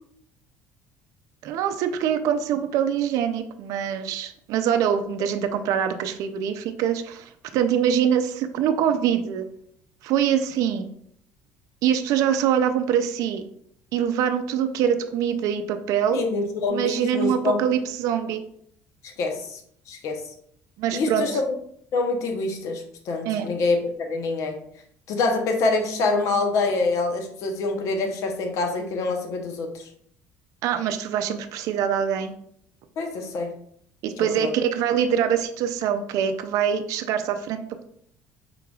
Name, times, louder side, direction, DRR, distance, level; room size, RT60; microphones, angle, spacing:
voice 1, 1.4-9.5 10.0-10.9 11.8-13.4 13.9-16.2 16.7-18.4 20.8-21.4 23.2-23.5 30.6-32.3 34.0-37.9, right 8 dB, 70° right, 8 dB, 0.4 m, -24 dB
voice 2, 16.1-17.6 19.0-19.6 19.9-20.2 20.9-21.5 21.9-24.6 25.1-29.9 33.0-33.5 34.2-34.5, left 3 dB, 60° left, 4 dB, 0.8 m, -26 dB
4.7 x 3.8 x 2.3 m, 0.67 s
cardioid pair, 120°, 6 cm